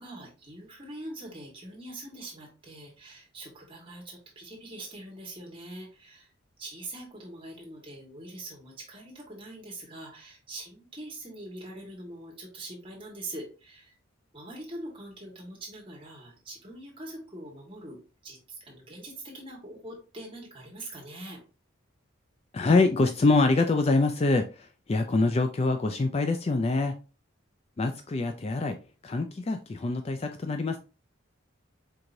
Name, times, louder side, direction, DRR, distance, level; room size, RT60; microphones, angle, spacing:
voice 1, 0.0-6.3 6.6-13.9 14.3-18.0 18.2-21.4, right 1 dB, 25° right, -1 dB, 1.5 m, -43 dB
voice 2, 22.5-27.0 27.8-28.8 29.0-30.8, left 3 dB, 30° left, 6 dB, 0.3 m, -25 dB
4.6 x 3.8 x 2.6 m, 0.33 s
head